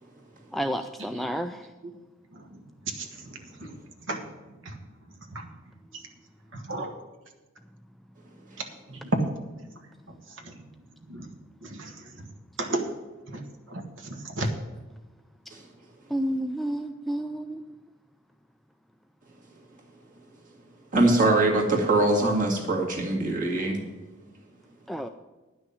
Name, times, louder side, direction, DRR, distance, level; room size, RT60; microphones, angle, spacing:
voice 1, 0.5-1.7 16.1-17.8 24.9-25.1, equal, ahead, 6 dB, 0.3 m, -30 dB
voice 2, 3.0-3.7 4.1-4.3 4.6-4.7 5.3-5.5 5.9-6.0 6.5-6.9 8.9-9.2 10.4-10.5 11.1-11.3 11.6-12.3 12.6-12.9 13.3-13.4 13.7-14.5, right 1 dB, 60° right, 4 dB, 1.4 m, -33 dB
voice 3, 20.9-23.8, right 2 dB, 40° right, 0 dB, 2.1 m, -22 dB
10.0 x 6.3 x 8.5 m, 1.2 s
head